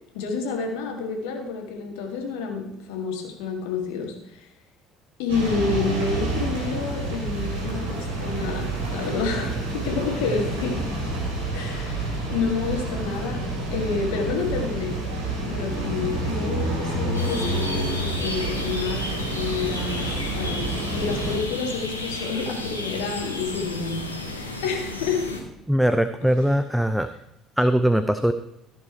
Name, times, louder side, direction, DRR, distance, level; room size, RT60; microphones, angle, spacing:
voice 1, 0.1-4.5 5.2-10.8 11.5-13.4 13.7-15.0 15.4-25.4, left 5 dB, 65° left, 3 dB, 1.8 m, -29 dB
sound 1, 5.3-21.4, right 2 dB, 70° right, 3.0 m, -29 dB
sound 2, 17.1-25.4, left 2 dB, 85° left, 1.1 m, -32 dB
voice 2, 25.7-27.1 27.6-28.3, equal, ahead, 10 dB, 0.5 m, -21 dB
14.0 x 5.7 x 4.5 m, 0.85 s
figure-of-eight pair, 55°, 0 cm